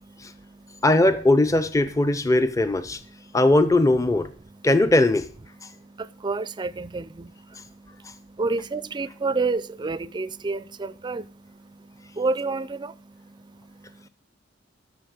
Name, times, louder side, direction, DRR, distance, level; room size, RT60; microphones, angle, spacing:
voice 1, 0.1-0.9 3.0-3.4 4.4-4.7 5.5-14.1, right 3 dB, 25° right, 0.4 m, -31 dB
voice 2, 0.8-3.0 3.3-4.3 4.6-5.3, left 2 dB, 15° left, 0.6 m, -19 dB
11.5 x 6.5 x 6.5 m
head